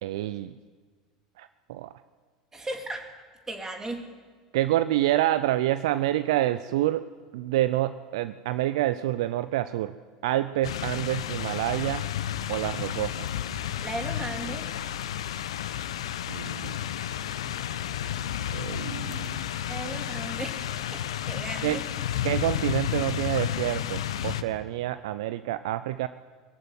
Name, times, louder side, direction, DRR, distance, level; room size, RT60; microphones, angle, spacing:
voice 1, 0.0-0.5 1.4-1.9 4.5-7.0 7.3-9.9 10.2-12.1 12.5-13.3 16.3-16.8 18.5-19.5 21.6-21.8 22.2-26.1, right 14 dB, 65° right, 13 dB, 0.6 m, -27 dB
voice 2, 2.5-3.1 3.5-4.1 13.8-14.7 19.7-21.8, right 2 dB, 15° right, 3 dB, 3.5 m, -36 dB
sound 1, 10.6-24.4, left 10 dB, 70° left, 1.1 m, -32 dB
21.5 x 14.5 x 9.6 m, 1.5 s
figure-of-eight pair, 80°, 3 cm